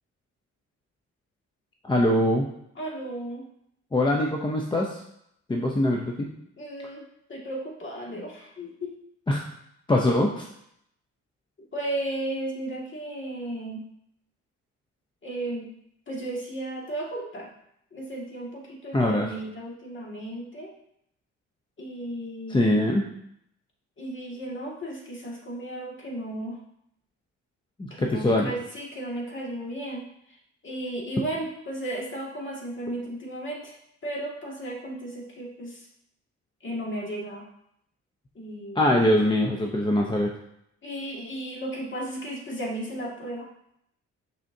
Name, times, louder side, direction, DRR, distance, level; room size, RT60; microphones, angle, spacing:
voice 1, 1.8-2.5 3.9-5.0 5.5-6.3 9.3-9.4 9.9-10.5 18.9-19.3 22.5-23.0 27.8-28.5 38.8-40.3, left 1 dB, 15° left, 0 dB, 0.6 m, -23 dB
voice 2, 2.8-3.5 6.6-8.9 11.7-13.8 15.2-15.7 16.1-17.5 17.9-20.7 21.8-22.7 24.0-26.6 27.9-30.4 30.6-33.7 34.0-35.9 36.6-37.5 38.4-38.9 40.8-43.5, right 1 dB, 40° left, -3 dB, 1.9 m, -34 dB
6.2 x 5.6 x 2.7 m, 0.76 s
cardioid pair, 90°, 30 cm